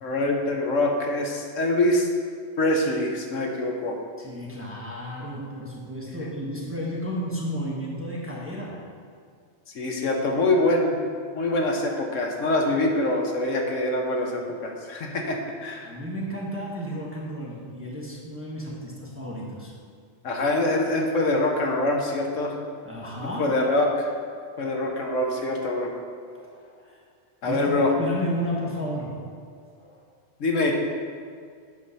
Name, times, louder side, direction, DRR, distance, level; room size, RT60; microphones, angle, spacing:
voice 1, 0.0-2.1 2.6-4.0 9.7-11.0 11.3-15.9 20.2-22.5 23.4-24.1 24.6-25.9 27.4-27.9 30.4-30.7, left 2 dB, 70° left, 1 dB, 1.3 m, -24 dB
voice 2, 4.2-8.9 15.8-19.7 22.8-23.6 26.2-27.0 27.4-29.3 29.8-30.0, equal, 10° right, -4 dB, 0.9 m, -33 dB
8.5 x 4.0 x 5.5 m, 2.1 s
omnidirectional pair, 1.4 m